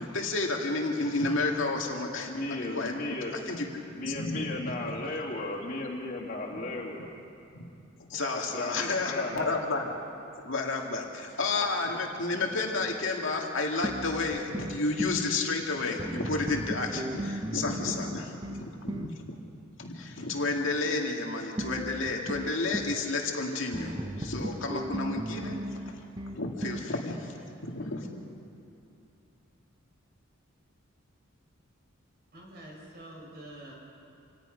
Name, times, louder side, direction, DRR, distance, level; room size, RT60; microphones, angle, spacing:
voice 1, 0.0-2.3 2.7-2.9 3.5-4.6 4.9-5.0 7.5-7.7 8.1-10.0 10.4-19.3 19.8-25.6 26.3-27.3 27.6-28.1, left 3 dB, 70° left, 1 dB, 2.2 m, -31 dB
voice 2, 2.3-3.4 3.9-7.1 8.3-9.5, left 2 dB, 40° left, -3 dB, 2.9 m, -35 dB
sound 1, 13.8-15.3 16.0-19.2 21.6-23.0 23.7-26.9, right 1 dB, 20° right, 0.7 m, -36 dB
voice 3, 32.3-33.7, right 1 dB, 50° right, -2 dB, 5.8 m, -46 dB
27.5 x 18.0 x 5.2 m, 2.7 s
head